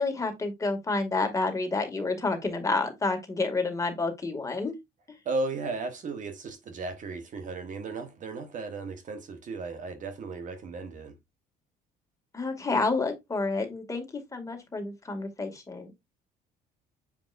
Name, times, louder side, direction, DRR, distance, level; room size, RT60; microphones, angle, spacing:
voice 1, 0.0-4.8 12.3-14.0 14.3-15.9, left 3 dB, 20° left, 2.1 m, -29 dB
voice 2, 5.2-11.2, right 3 dB, 50° right, 1.3 m, -35 dB
7.4 x 5.2 x 2.5 m
cardioid pair, 110°, 17 cm